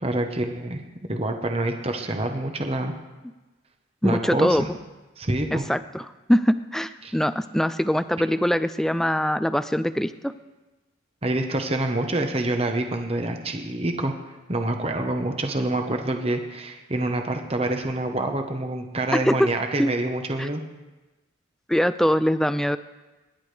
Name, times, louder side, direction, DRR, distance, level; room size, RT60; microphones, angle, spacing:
voice 1, 0.0-0.8 1.1-2.9 4.0-4.7 5.2-5.6 7.0-7.1 11.2-14.1 14.5-20.6, right 2 dB, 30° right, 4 dB, 1.0 m, -26 dB
voice 2, 4.0-4.6 5.5-10.3 19.1-19.4 19.8-19.9 20.4-20.5 21.7-22.8, equal, ahead, 11 dB, 0.3 m, -23 dB
25.0 x 11.0 x 3.4 m, 1.2 s
head